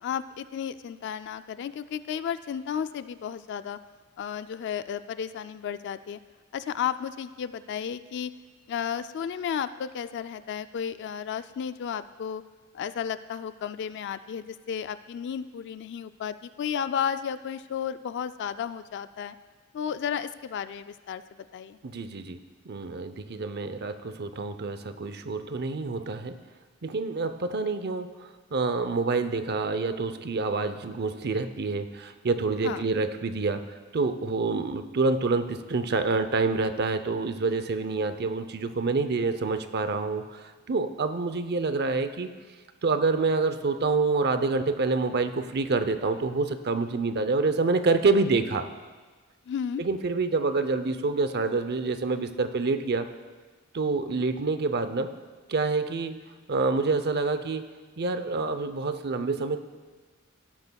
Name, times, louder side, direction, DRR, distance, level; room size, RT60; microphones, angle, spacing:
voice 1, 0.0-3.8 4.2-6.2 6.5-8.3 8.7-12.4 12.7-19.4 19.7-21.2 21.5-21.8 32.6-32.8 49.5-49.8, left 8 dB, 55° left, 12 dB, 0.3 m, -33 dB
voice 2, 21.8-22.4 22.7-26.4 26.8-33.6 33.9-42.3 42.8-48.6 49.8-53.1 53.7-55.1 55.5-56.2 56.5-57.7 58.0-59.6, right 3 dB, 50° right, 10 dB, 0.6 m, -27 dB
16.5 x 12.0 x 2.3 m, 1.4 s
head